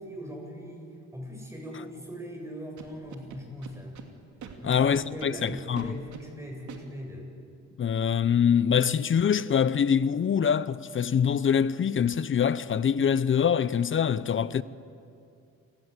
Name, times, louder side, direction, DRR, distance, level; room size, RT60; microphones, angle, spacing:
voice 1, 0.0-4.0 4.6-7.3, equal, 10° right, 7.7 m, -40 dB
Scratching (performance technique), 2.8-4.1 4.4-4.5 4.9-6.2 6.7-6.8, right 7 dB, 70° right, 3.0 m, -43 dB
voice 2, 4.6-6.0 7.8-14.6, left 7 dB, 40° left, 0.8 m, -24 dB
29.5 x 21.0 x 8.3 m
cardioid pair, 90°, 30 cm